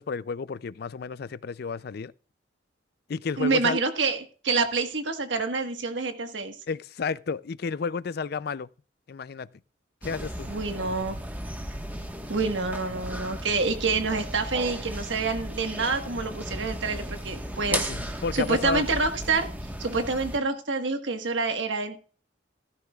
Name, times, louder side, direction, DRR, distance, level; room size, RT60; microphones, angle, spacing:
voice 1, 0.0-2.1 3.1-3.8 6.7-8.7 9.1-9.5 10.0-10.5 17.7-18.8, left 5 dB, 55° left, 0.4 m, -31 dB
voice 2, 3.4-6.6 10.5-11.2 12.3-17.8 18.3-19.5 19.8-22.0, right 4 dB, 80° right, 1.5 m, -27 dB
sound 1, 10.0-20.4, equal, 10° right, 1.3 m, -35 dB
16.0 x 13.5 x 2.4 m
head